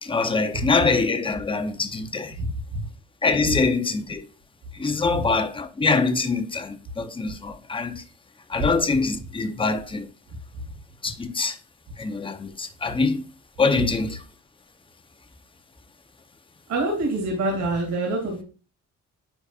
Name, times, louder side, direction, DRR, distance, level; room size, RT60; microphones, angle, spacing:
voice 1, 0.0-2.4 3.2-4.3 4.7-8.0 8.5-10.1 11.0-11.6 12.0-13.2 13.6-14.2, left 4 dB, 15° left, 0.7 m, -24 dB
voice 2, 16.7-18.4, right 2 dB, 70° right, 2.6 m, -25 dB
9.9 x 4.2 x 2.4 m
cardioid pair, 90°, 30 cm